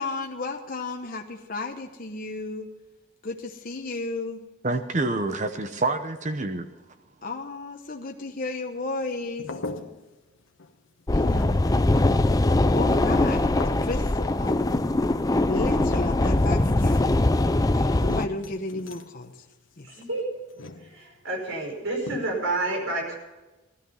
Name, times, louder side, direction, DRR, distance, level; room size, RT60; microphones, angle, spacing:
voice 1, 0.0-2.7 3.2-4.5 7.2-9.5 11.1-11.6 12.7-14.6 15.4-17.1 17.7-19.4 19.8-19.9, left 2 dB, 45° left, 2 dB, 1.0 m, -33 dB
voice 2, 4.6-6.7, right 2 dB, 35° right, 8 dB, 0.8 m, -27 dB
sound 1, 9.4-10.3 10.6-11.0 11.3-11.9 13.4-14.1 15.3-15.4 15.6-17.2 18.1-19.2 20.5-21.2 22.0-22.5, left 2 dB, 75° left, 1.2 m, -39 dB
sound 2, 11.1-18.3, left 2 dB, 20° left, 0.4 m, -22 dB
voice 3, 19.8-20.2 20.9-23.2, right 2 dB, 75° right, 1 dB, 5.2 m, -29 dB
16.5 x 13.0 x 5.5 m, 1.1 s
head